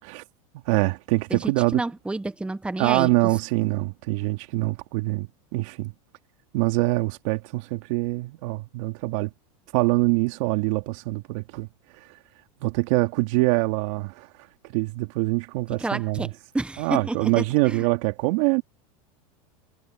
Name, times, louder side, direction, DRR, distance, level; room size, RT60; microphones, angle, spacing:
voice 1, 0.6-1.8 2.8-5.9 6.5-9.3 9.7-11.7 11.9-12.1 12.6-14.3 14.6-16.3 16.8-18.6, right 23 dB, 60° right, 2.8 m, -24 dB
voice 2, 1.3-3.1 15.8-16.3 16.5-17.9, right 2 dB, 5° right, 1.2 m, -29 dB
supercardioid pair, 125°, 18 cm